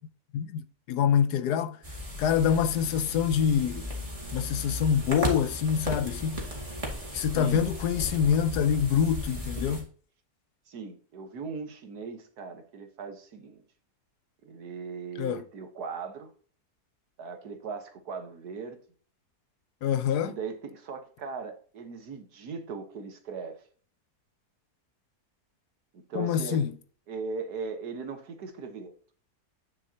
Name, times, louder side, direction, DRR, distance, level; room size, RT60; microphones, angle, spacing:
voice 1, 0.3-1.8 2.2-3.9 4.3-6.4 7.1-9.9 15.2-15.4 19.8-20.3 26.1-26.7, left 8 dB, 85° left, 1.3 m, -26 dB
sound 1, 1.8-9.8, equal, 20° right, 2.2 m, -36 dB
voice 2, 7.3-7.7 10.7-13.6 14.4-16.3 17.2-18.8 20.2-23.6 25.9-26.6 27.1-28.9, right 5 dB, 75° right, 1.7 m, -38 dB
9.6 x 6.5 x 2.8 m
omnidirectional pair, 1.7 m